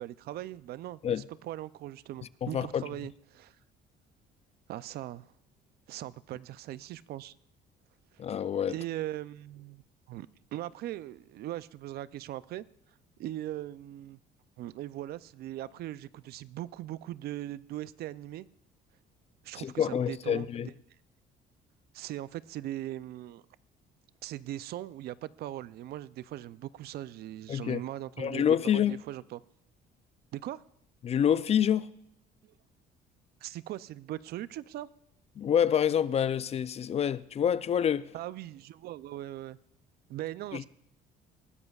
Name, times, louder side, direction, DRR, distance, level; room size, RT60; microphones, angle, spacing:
voice 1, 0.0-3.6 4.7-5.3 5.9-7.3 8.7-12.6 13.2-14.2 14.6-18.5 19.4-20.7 21.9-23.4 24.2-28.5 28.7-29.4 30.3-30.6 32.4-32.5 33.4-34.9 38.1-39.6 40.1-40.6, right 14 dB, 70° right, 0.5 m, -40 dB
voice 2, 2.4-2.8 8.2-8.7 19.6-20.7 27.5-27.8 28.2-29.0 31.0-31.9 35.4-38.1 40.5-40.6, left 9 dB, 40° left, 0.4 m, -27 dB
20.0 x 14.0 x 2.4 m
cardioid pair, 110°, 17 cm